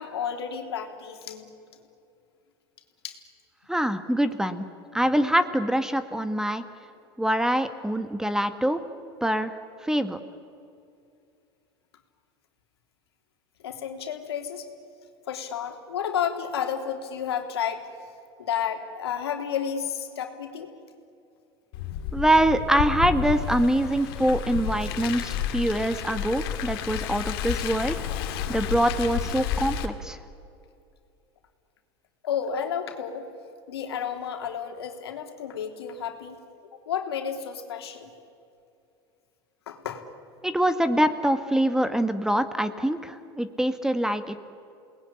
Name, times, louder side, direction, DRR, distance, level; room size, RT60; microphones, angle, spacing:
voice 1, 0.0-1.5 3.0-3.2 13.6-14.6 15.3-17.8 18.4-20.7 32.2-33.3 33.7-36.4 36.7-38.1 39.7-40.1, left 8 dB, 85° left, 4 dB, 3.3 m, -31 dB
voice 2, 3.7-4.6 4.9-6.6 7.2-8.8 9.2-9.6 9.8-10.2 22.1-28.0 28.5-30.2 40.4-44.4, right 1 dB, 5° right, 10 dB, 1.8 m, -24 dB
Car, 21.7-29.9, left 8 dB, 70° left, 2.5 m, -31 dB
29.0 x 20.0 x 10.0 m, 2.5 s
hypercardioid pair, 90°, 13 cm